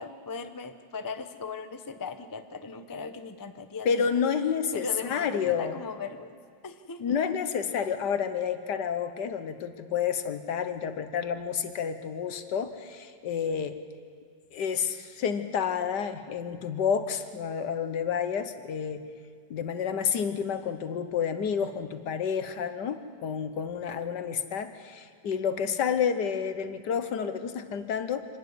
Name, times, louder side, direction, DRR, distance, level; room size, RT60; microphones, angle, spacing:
voice 1, 0.0-4.2 4.7-6.4 6.6-7.2, left 4 dB, 20° left, 8 dB, 0.5 m, -38 dB
voice 2, 3.8-5.7 7.0-13.8 14.5-19.0 19.5-28.3, left 7 dB, 75° left, 10 dB, 1.7 m, -30 dB
25.5 x 12.5 x 9.6 m, 2.1 s
omnidirectional pair, 1.9 m